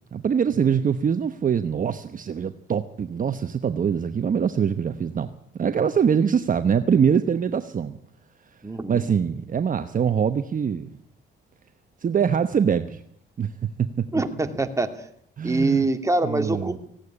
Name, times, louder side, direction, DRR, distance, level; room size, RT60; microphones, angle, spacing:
voice 1, 0.1-5.3 5.6-8.0 8.9-11.0 12.0-13.0 13.4-13.5 13.8-14.1 15.4-15.8 16.2-16.8, right 7 dB, 40° right, 10 dB, 1.1 m, -23 dB
voice 2, 8.6-9.0 14.1-14.9 15.4-16.8, right 2 dB, 15° right, 6 dB, 2.6 m, -24 dB
18.0 x 16.5 x 9.8 m, 0.72 s
cardioid pair, 90°, 20 cm